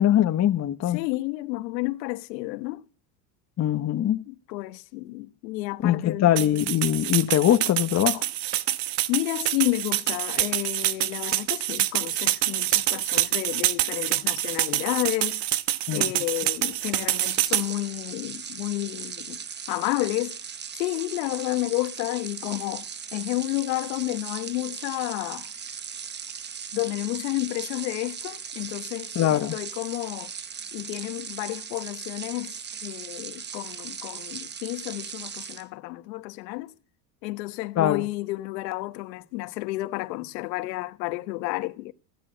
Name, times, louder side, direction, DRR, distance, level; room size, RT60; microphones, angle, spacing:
voice 1, 0.0-1.0 3.6-4.2 5.8-8.2 15.9-16.1 29.1-29.5 37.8-38.0, left 11 dB, 35° left, 1.1 m, -22 dB
voice 2, 0.9-2.8 4.3-6.3 9.1-15.4 15.9-20.4 20.7-25.5 26.7-30.3 30.7-36.7 37.2-41.9, left 20 dB, 85° left, 1.3 m, -31 dB
sound 1, 6.4-17.7, right 14 dB, 55° right, 1.2 m, -26 dB
sound 2, 17.0-35.7, right 7 dB, 20° right, 0.9 m, -38 dB
16.0 x 10.5 x 6.3 m
supercardioid pair, 110°, 49 cm